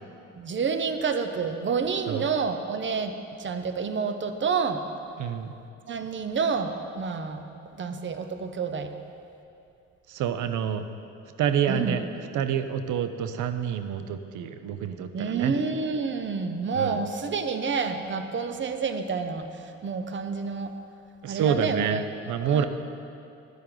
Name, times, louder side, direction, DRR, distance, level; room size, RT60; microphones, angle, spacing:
voice 1, 0.3-3.1 3.4-4.8 5.9-7.4 7.8-8.9 11.7-12.0 15.1-19.4 19.8-20.7 21.3-22.0 22.4-22.7, right 5 dB, 40° right, 8 dB, 0.8 m, -28 dB
voice 2, 5.2-5.5 10.1-10.8 11.4-12.1 12.3-15.5 16.7-17.0 21.2-22.7, right 8 dB, 80° right, 10 dB, 0.7 m, -27 dB
11.5 x 10.5 x 3.9 m, 2.6 s
cardioid pair, 90°, 30 cm